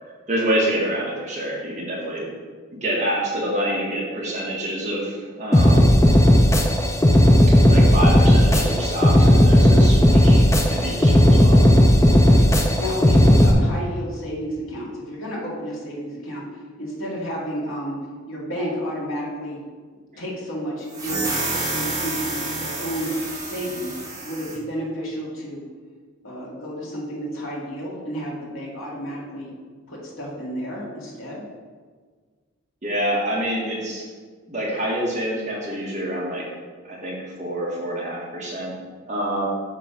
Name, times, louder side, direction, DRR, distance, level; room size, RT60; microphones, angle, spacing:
voice 1, 0.0-2.2 2.7-5.9 7.5-11.6 20.1-20.2 32.8-34.1 34.5-36.5 36.8-38.8 39.0-39.5, right 1 dB, 35° right, -5 dB, 1.7 m, -27 dB
sound 1, 5.5-13.5, equal, 15° left, 0.5 m, -14 dB
voice 2, 12.0-18.0 18.3-19.6 20.2-23.1 23.4-25.6 26.2-29.5 29.9-31.4, equal, 75° left, -4 dB, 2.0 m, -31 dB
sound 2, 20.9-24.6, right 2 dB, 15° right, 1.7 m, -29 dB
7.5 x 3.3 x 5.9 m, 1.5 s
head